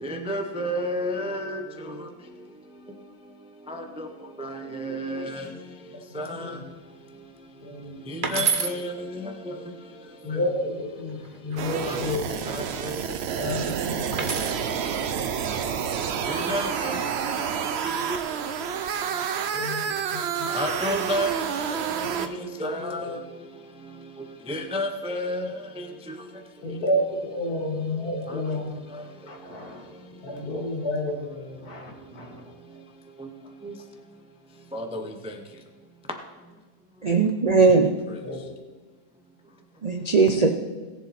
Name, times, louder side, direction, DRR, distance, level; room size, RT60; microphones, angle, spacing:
voice 1, 0.0-1.6 3.7-4.1 4.4-5.5 6.1-6.6 8.1-9.3 11.9-12.1 12.5-12.9 16.3-17.0 20.5-21.3 21.7-21.8 22.6-23.2 24.5-25.5 25.8-25.9 33.2-33.3 33.6-33.7 34.7-35.1, equal, 5° right, 5 dB, 0.5 m, -30 dB
voice 2, 7.6-8.5 10.2-11.2 11.4-12.2 13.4-14.3 15.5-15.7 16.2-16.3 19.5-19.8 20.1-20.6 26.6-28.7 29.3-29.9 30.2-32.4 38.2-38.4, left 1 dB, 65° left, 0 dB, 2.6 m, -30 dB
sound 1, 8.2-8.8 11.0-11.6 14.1-14.6 16.0-16.4, right 5 dB, 35° right, 1.0 m, -28 dB
sound 2, 11.6-22.3, right 7 dB, 60° right, 0.7 m, -29 dB
voice 3, 37.0-37.9 39.8-40.5, right 4 dB, 75° right, 5 dB, 0.3 m, -19 dB
18.0 x 7.1 x 4.3 m, 1.4 s
omnidirectional pair, 1.7 m